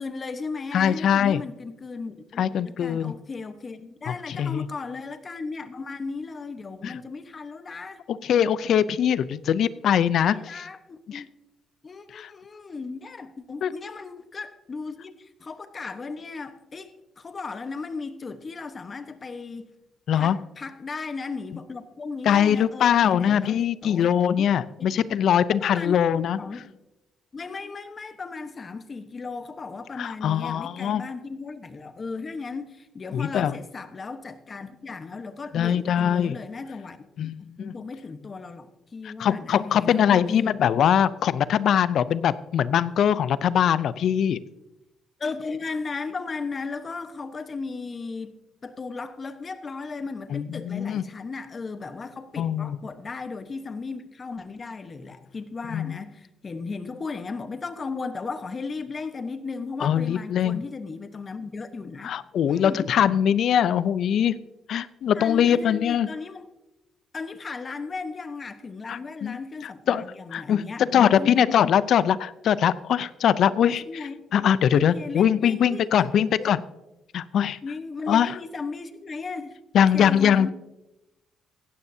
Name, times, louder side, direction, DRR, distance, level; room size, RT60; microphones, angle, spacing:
voice 1, 0.0-8.0 10.2-11.3 11.8-19.7 20.1-24.1 24.4-24.5 24.8-25.0 25.6-26.0 26.4-26.7 27.3-37.0 37.2-40.6 45.2-48.4 48.6-62.1 62.4-62.9 65.1-66.5 67.1-71.4 73.5-74.3 74.7-76.7 77.6-79.6 79.9-80.5, left 4 dB, 35° left, 10 dB, 1.1 m, -36 dB
voice 2, 0.7-1.4 2.4-3.1 4.1-4.7 6.8-7.0 8.1-10.4 11.1-11.2 12.1-12.3 13.6-13.7 20.1-20.4 22.2-26.4 30.0-31.0 33.1-33.6 35.5-36.4 37.2-37.7 39.0-44.4 50.3-51.0 52.4-52.8 55.7-56.0 59.8-60.6 62.0-64.4 64.7-66.1 68.9-69.4 69.9-70.0 70.3-73.8 74.3-76.6 77.1-77.6 78.1-78.4 79.7-80.5, left 9 dB, 70° left, 17 dB, 0.5 m, -22 dB
16.0 x 13.0 x 2.7 m, 0.96 s
cardioid pair, 90°, 0 cm